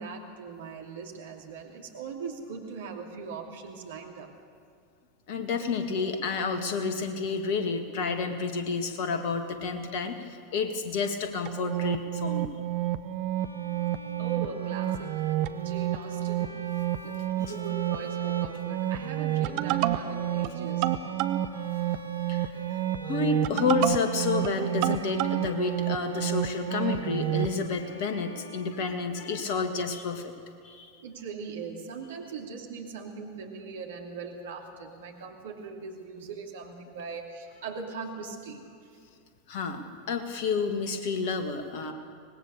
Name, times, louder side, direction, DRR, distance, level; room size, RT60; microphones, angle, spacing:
voice 1, 0.0-4.3 14.2-15.1 15.5-16.6 17.0-20.9 31.0-38.6, right 5 dB, 60° right, 1 dB, 2.8 m, -40 dB
voice 2, 5.3-12.5 22.3-22.4 23.1-30.3 30.6-30.9 39.5-41.9, left 4 dB, 50° left, 6 dB, 2.0 m, -30 dB
sound 1, 11.5-27.6, right 13 dB, 45° right, 0.8 m, -30 dB
Bowed string instrument, 13.4-29.4, right 1 dB, 90° left, 1.3 m, -46 dB
25.0 x 19.0 x 6.8 m, 2.2 s
figure-of-eight pair, 85°, 0 cm